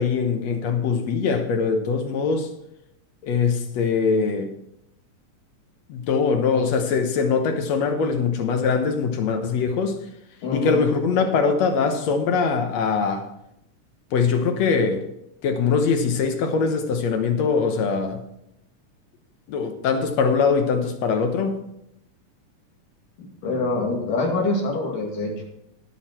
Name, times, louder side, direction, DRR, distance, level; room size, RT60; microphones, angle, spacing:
voice 1, 0.0-2.5 3.2-4.5 5.9-10.0 10.5-13.3 14.1-15.1 15.4-18.2 19.5-21.6, left 5 dB, 65° left, 6 dB, 2.0 m, -22 dB
voice 2, 10.4-10.8 23.2-25.5, left 3 dB, 90° left, 0 dB, 3.9 m, -25 dB
18.0 x 6.5 x 4.3 m, 0.80 s
omnidirectional pair, 3.7 m